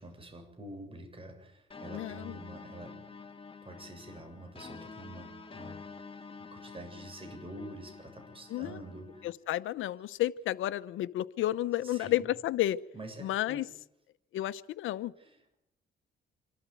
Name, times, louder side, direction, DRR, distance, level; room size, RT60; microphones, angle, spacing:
voice 1, 0.0-3.0 3.6-5.8 6.4-9.2 11.8-12.3 12.9-13.6 15.2-15.5, right 1 dB, 25° right, 5 dB, 7.3 m, -47 dB
sound 1, 1.7-9.3, left 5 dB, 25° left, 2.2 m, -48 dB
voice 2, 1.9-2.4 8.5-8.8 9.2-12.8 13.2-13.7 14.3-15.1, left 14 dB, 80° left, 15 dB, 0.9 m, -31 dB
27.0 x 13.5 x 9.3 m, 0.81 s
cardioid pair, 90°, 20 cm